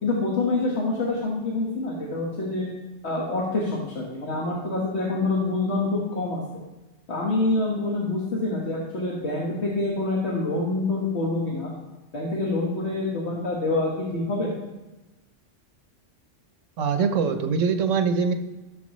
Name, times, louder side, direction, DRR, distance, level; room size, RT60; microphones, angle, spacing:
voice 1, 0.0-2.7 3.0-6.4 7.1-11.7 12.1-14.5, left 2 dB, 60° left, -3 dB, 1.7 m, -26 dB
voice 2, 16.8-18.3, right 5 dB, 90° right, 8 dB, 1.2 m, -23 dB
15.5 x 6.9 x 3.1 m, 1.1 s
omnidirectional pair, 1.3 m